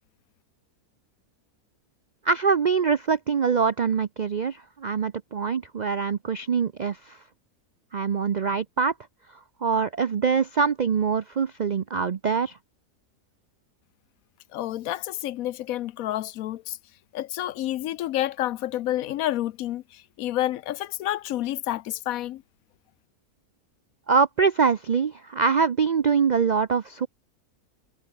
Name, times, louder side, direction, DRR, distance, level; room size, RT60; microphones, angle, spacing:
voice 1, 2.2-7.2 7.9-8.9 9.6-12.6 24.1-27.1, right 5 dB, 60° right, 0.4 m, -24 dB
voice 2, 14.5-16.8 17.1-22.4, left 13 dB, 75° left, 1.0 m, -29 dB
omnidirectional pair, 1.6 m